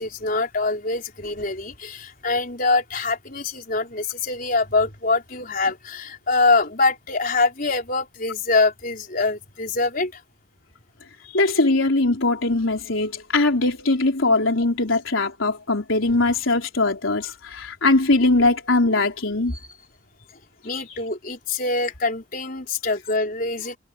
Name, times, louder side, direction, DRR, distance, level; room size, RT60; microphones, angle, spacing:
voice 1, 0.0-10.2 19.5-19.6 20.6-23.8, left 3 dB, 45° left, 4.8 m, -24 dB
voice 2, 11.3-19.5, left 2 dB, 80° left, 3.9 m, -21 dB
head